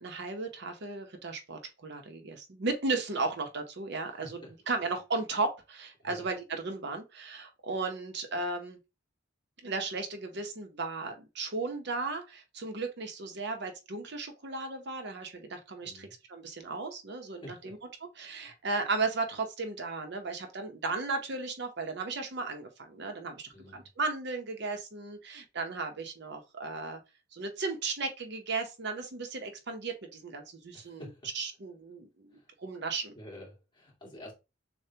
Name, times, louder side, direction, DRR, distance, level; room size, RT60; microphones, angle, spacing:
voice 1, 0.0-4.4 4.7-8.8 9.6-17.8 18.2-27.0 27.3-31.1 31.3-33.1, right 3 dB, 60° right, 0.9 m, -35 dB
voice 2, 4.1-4.5 6.0-6.3 15.8-16.1 17.4-17.7 18.4-18.5 23.5-23.9 30.7-31.3 32.3-32.5 33.2-34.3, left 1 dB, 25° left, 2.2 m, -49 dB
6.7 x 2.3 x 2.8 m
head